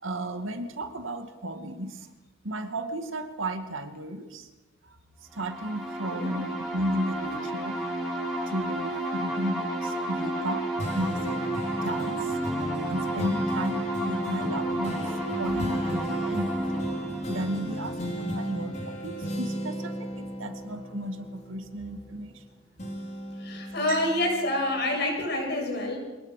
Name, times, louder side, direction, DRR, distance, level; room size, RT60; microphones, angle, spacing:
voice 1, 0.0-2.0 2.4-4.5 5.3-7.8 8.5-10.7 10.9-11.4 11.8-12.3 12.9-15.1 15.4-16.9 17.3-22.4 23.9-24.0, right 1 dB, 80° right, 7 dB, 2.4 m, -34 dB
sound 1, 5.4-18.9, right 1 dB, ahead, 7.6 m, -32 dB
voice 2, 6.0-6.4 23.4-26.0, left 1 dB, 55° left, 2 dB, 7.6 m, -28 dB
sound 2, 10.8-22.4 22.8-24.7 25.2-25.3, equal, 35° left, 4.8 m, -35 dB
25.0 x 19.0 x 6.7 m, 1.1 s
head